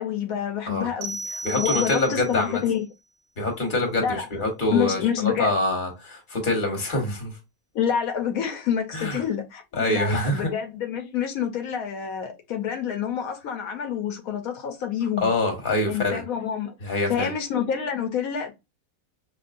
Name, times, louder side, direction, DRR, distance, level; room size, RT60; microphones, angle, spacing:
voice 1, 0.0-2.9 4.0-4.3 4.7-5.5 7.7-15.3 15.9-16.7 17.1-18.5, left 8 dB, 85° left, 1.1 m, -27 dB
sound 1, 1.0-2.5, right 2 dB, 55° right, 0.9 m, -32 dB
voice 2, 1.4-2.6 3.4-7.3 8.9-9.2 9.7-10.5 15.2-16.2 16.8-17.3, left 2 dB, 40° left, 1.4 m, -25 dB
5.2 x 2.8 x 2.5 m
omnidirectional pair, 1.5 m